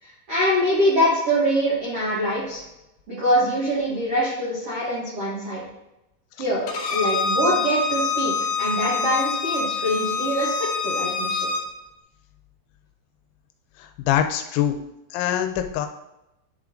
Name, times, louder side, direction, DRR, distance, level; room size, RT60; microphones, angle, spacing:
voice 1, 0.0-2.6 3.1-5.6 6.4-6.6 6.9-8.3 8.6-11.5, equal, 80° right, -7 dB, 1.3 m, -24 dB
Bowed string instrument, 6.7-11.6, left 4 dB, 70° left, 2.2 m, -25 dB
voice 2, 13.8-14.8 15.1-15.9, left 10 dB, 85° left, 6 dB, 2.8 m, -24 dB
10.5 x 3.5 x 3.7 m, 0.91 s
omnidirectional pair, 5.5 m